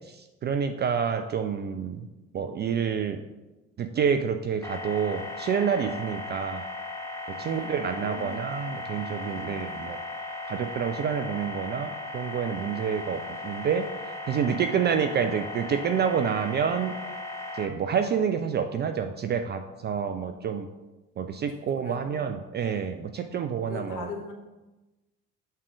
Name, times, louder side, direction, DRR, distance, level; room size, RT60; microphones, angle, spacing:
voice 1, 0.1-2.1 2.3-3.2 3.8-6.6 7.3-10.0 10.5-13.9 14.3-16.9 17.6-20.7 21.2-24.1, right 7 dB, 25° right, 7 dB, 0.4 m, -28 dB
sound 1, 4.6-17.7, left 2 dB, 5° left, 1.0 m, -37 dB
voice 2, 7.3-8.8 9.2-9.8 21.5-22.3 23.3-24.3, left 4 dB, 50° left, 1 dB, 1.5 m, -43 dB
6.6 x 3.6 x 6.0 m, 1.1 s
figure-of-eight pair, 50°, 40 cm